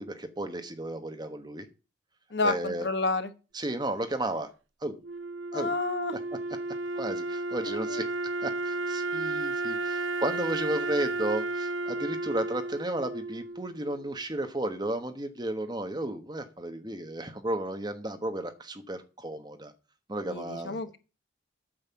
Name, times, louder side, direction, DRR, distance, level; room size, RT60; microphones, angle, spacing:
voice 1, 0.0-1.7 2.4-2.9 3.5-4.5 4.8-5.0 5.5-5.8 7.0-8.1 8.4-19.7 20.1-20.8, right 1 dB, 20° right, 7 dB, 1.2 m, -33 dB
voice 2, 2.3-3.3 5.5-6.1 7.6-8.0 20.3-21.0, left 3 dB, 60° left, 9 dB, 1.1 m, -30 dB
Wind instrument woodwind instrument, 5.0-14.1, right 2 dB, 75° right, 0.7 m, -33 dB
8.9 x 6.4 x 7.3 m, 0.32 s
head